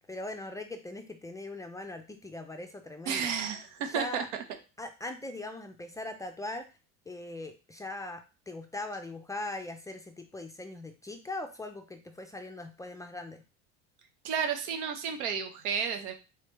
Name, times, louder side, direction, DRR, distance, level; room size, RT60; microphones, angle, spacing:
voice 1, 0.0-3.3 3.9-4.3 4.8-6.7 7.1-13.4, left 2 dB, 10° left, 6 dB, 0.3 m, -40 dB
voice 2, 3.1-4.2 14.2-16.1, right 7 dB, 90° right, 6 dB, 1.0 m, -32 dB
3.8 x 3.2 x 3.3 m, 0.31 s
supercardioid pair, 115°, 34 cm